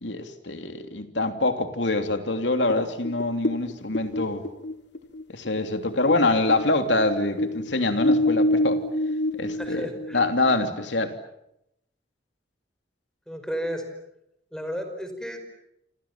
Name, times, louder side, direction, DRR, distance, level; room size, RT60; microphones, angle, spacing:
voice 1, 0.0-4.4 5.3-8.8 9.4-11.2, left 2 dB, 85° left, 7 dB, 3.1 m, -25 dB
sound 1, 2.7-6.2 6.5-10.6, left 1 dB, 70° left, 2.6 m, -26 dB
voice 2, 9.5-10.2 13.3-13.8 14.5-15.5, equal, 5° left, 7 dB, 5.2 m, -33 dB
29.0 x 27.0 x 7.4 m, 0.81 s
head